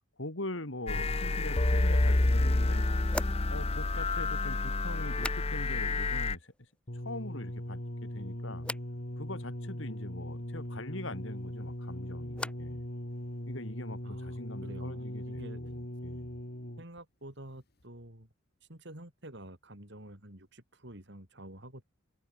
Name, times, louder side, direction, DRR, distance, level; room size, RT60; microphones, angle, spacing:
voice 1, 0.2-2.9 3.5-6.5 7.0-8.7 9.2-12.8 13.5-16.3, left 1 dB, 70° left, 3.6 m, -42 dB
sound 1, 0.9-6.4, left 2 dB, 30° left, 0.8 m, -28 dB
sound 2, 3.1-5.9 6.2-6.8 7.1-7.8 8.6-9.0 11.4-12.8 13.1-13.7, left 1 dB, 5° left, 5.2 m, -44 dB
sound 3, 6.9-17.0 17.8-17.9, left 1 dB, 50° left, 3.4 m, -40 dB
voice 2, 14.0-15.6 16.8-18.3 18.7-21.8, right 1 dB, 55° right, 4.2 m, -48 dB
open air
head